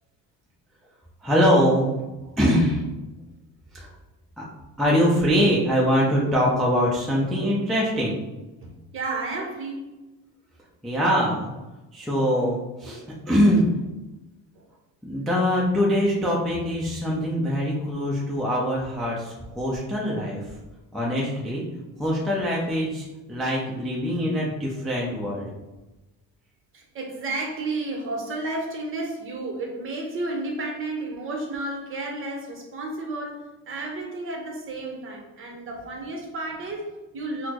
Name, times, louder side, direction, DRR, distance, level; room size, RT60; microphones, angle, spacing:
voice 1, 1.2-1.9 2.4-2.8 3.7-3.9 4.4-4.5 4.8-8.2 10.8-11.5 11.9-13.7 15.0-20.5 20.9-21.6 22.0-25.5, equal, ahead, -5 dB, 0.3 m, -23 dB
voice 2, 8.6-9.9 14.5-14.7 26.7-37.5, right 2 dB, 35° right, 1 dB, 0.7 m, -32 dB
4.0 x 2.0 x 2.8 m, 1.1 s
cardioid pair, 140°, 36 cm